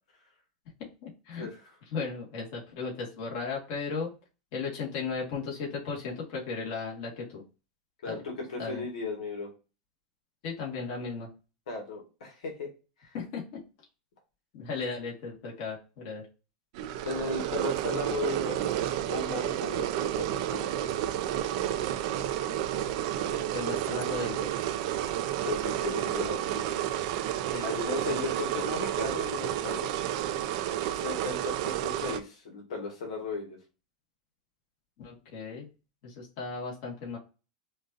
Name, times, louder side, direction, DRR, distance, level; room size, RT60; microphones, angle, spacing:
voice 1, 1.0-1.5 1.9-4.1 4.5-7.4 8.0-8.2 8.6-8.9 10.4-11.3 13.1-13.6 14.5-16.2 23.3-24.6 27.5-27.7 28.1-28.2 35.0-35.7 36.0-37.2, left 4 dB, 50° left, -3 dB, 1.8 m, -36 dB
voice 2, 8.0-9.5 11.7-12.7 13.0-13.2 17.0-18.8 19.1-21.0 25.4-26.8 27.6-29.9 31.0-33.6, left 3 dB, 85° left, 1 dB, 1.7 m, -36 dB
sound 1, 16.7-32.2, right 11 dB, 55° right, 0.5 m, -31 dB
5.1 x 2.7 x 2.6 m, 0.32 s
supercardioid pair, 140°, 4 cm